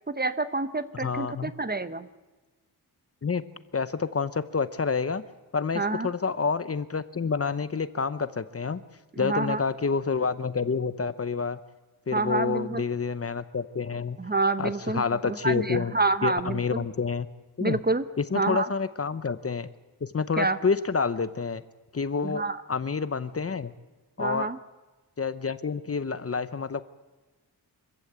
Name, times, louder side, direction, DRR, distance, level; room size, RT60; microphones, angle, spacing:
voice 1, 0.1-2.1 5.7-6.1 9.1-9.6 12.1-12.8 14.2-16.8 17.6-18.1 18.3-18.7 20.4-20.6 22.2-22.6 24.2-24.6, right 3 dB, 25° right, 12 dB, 0.8 m, -28 dB
voice 2, 1.0-1.5 3.2-3.4 3.7-5.2 5.5-8.8 9.2-11.6 12.1-14.2 14.6-15.9 16.2-17.3 17.6-17.8 18.2-19.7 20.0-21.6 21.9-22.4 22.7-23.7 24.2-24.5 25.2-26.8, left 5 dB, 35° left, 14 dB, 0.8 m, -28 dB
25.0 x 15.0 x 8.7 m, 1.2 s
wide cardioid pair, 165°, 40 cm